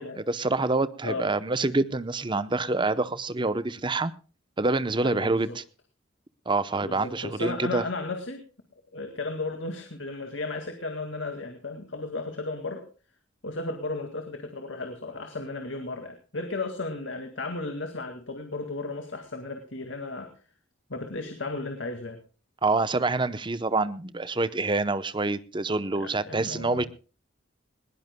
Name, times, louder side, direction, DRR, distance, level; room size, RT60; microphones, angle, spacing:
voice 1, 0.3-4.1 4.6-5.6 6.5-7.8 22.6-26.9, right 3 dB, 25° right, 14 dB, 0.8 m, -26 dB
voice 2, 5.0-5.6 6.8-8.4 8.9-12.8 13.4-20.3 20.9-22.2 25.9-26.9, left 3 dB, 80° left, 5 dB, 2.1 m, -34 dB
20.5 x 19.0 x 2.2 m, 0.35 s
head